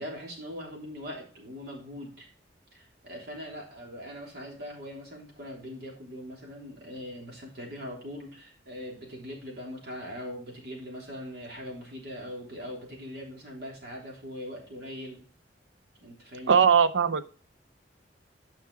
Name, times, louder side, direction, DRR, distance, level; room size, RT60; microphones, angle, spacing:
voice 1, 0.0-2.3 2.7-15.2 16.0-16.6, equal, 60° right, -1 dB, 3.3 m, -41 dB
voice 2, 16.5-17.3, right 7 dB, 90° right, 12 dB, 0.6 m, -20 dB
9.5 x 5.9 x 4.7 m, 0.41 s
head